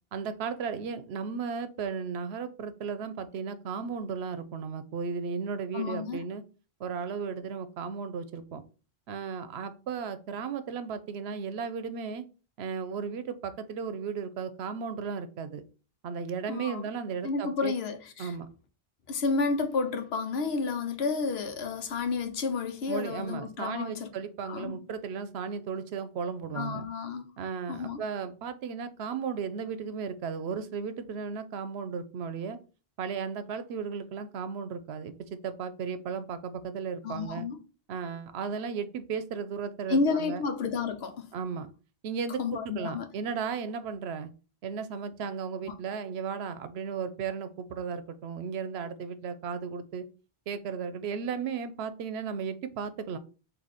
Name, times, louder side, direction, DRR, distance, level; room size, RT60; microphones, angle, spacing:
voice 1, 0.1-6.4 6.8-8.6 9.1-12.2 12.6-15.6 16.0-17.7 18.2-18.5 22.9-26.9 27.4-32.6 33.0-37.5 37.9-40.4 41.3-41.7 42.0-44.3 44.6-50.1 50.5-53.2, right 6 dB, 90° right, 0.9 m, -35 dB
voice 2, 5.7-6.2 16.5-16.8 17.2-18.3 19.1-24.1 24.5-24.8 26.5-27.3 27.7-28.0 37.0-37.6 39.9-41.3 42.4-43.1, left 4 dB, 80° left, 1.0 m, -31 dB
4.1 x 2.7 x 4.9 m
omnidirectional pair, 1.1 m